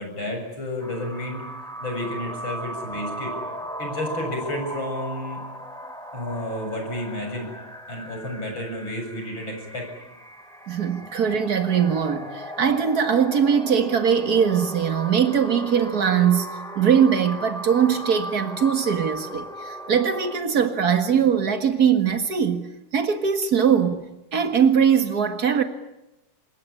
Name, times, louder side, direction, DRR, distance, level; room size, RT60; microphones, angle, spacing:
voice 1, 0.0-1.4 1.8-3.4 3.8-5.4 6.1-7.5 7.9-9.9, left 1 dB, 30° left, 7.8 m, -31 dB
sound 1, 0.8-20.4, equal, ahead, 4.2 m, -37 dB
voice 2, 10.7-22.6 22.9-24.0 24.3-25.6, right 7 dB, 65° right, 0.9 m, -21 dB
26.5 x 21.5 x 9.9 m
omnidirectional pair, 4.5 m